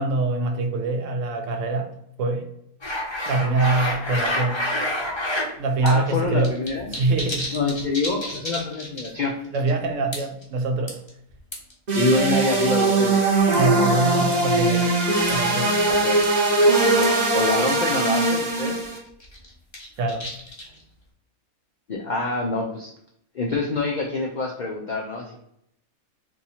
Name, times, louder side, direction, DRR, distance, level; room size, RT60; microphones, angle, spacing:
voice 1, 0.0-1.9 2.2-2.5 3.3-4.6 5.6-6.5 6.9-7.5 9.5-11.0 13.6-14.9 15.3-15.7 20.0-20.3, right 3 dB, 70° right, 5 dB, 0.9 m, -24 dB
sound 1, 2.8-5.5 5.9-6.0 6.2-9.2 9.5-9.7 10.1-10.4 10.9-11.7 12.5-13.2 13.5-13.7 14.3-14.5 15.3-15.4 15.8-15.9 16.2-16.4 16.6-16.7 17.0-17.1 17.7-17.8 18.0-18.1 18.5-18.7 19.2-20.8, left 1 dB, 25° left, 0.7 m, -29 dB
voice 2, 5.8-6.9 7.5-9.4 11.9-13.2 15.9-16.2 17.0-18.8 21.9-22.9 23.3-25.4, left 3 dB, 75° left, -1 dB, 0.4 m, -26 dB
sound 2, 11.9-19.0, right 2 dB, 40° right, 0.7 m, -20 dB
2.8 x 2.7 x 4.1 m, 0.74 s
omnidirectional pair, 1.5 m